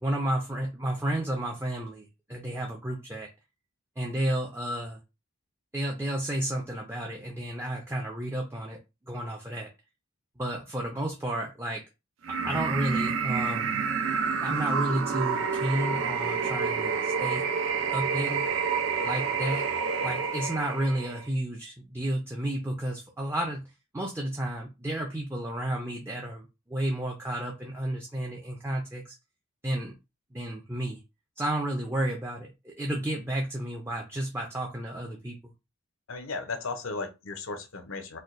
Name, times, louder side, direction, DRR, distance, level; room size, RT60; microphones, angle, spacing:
voice 1, 0.0-3.3 4.0-5.0 5.7-8.8 9.1-9.7 10.4-11.8 12.4-13.8 14.4-17.4 17.9-18.5 19.0-19.7 20.0-29.2 29.6-29.9 30.3-31.0 31.4-35.4, right 1 dB, 10° right, 0.5 m, -32 dB
sound 1, 12.2-21.3, right 5 dB, 70° right, 0.5 m, -29 dB
voice 2, 36.1-38.2, left 3 dB, 70° left, 0.6 m, -35 dB
4.2 x 2.2 x 2.5 m
head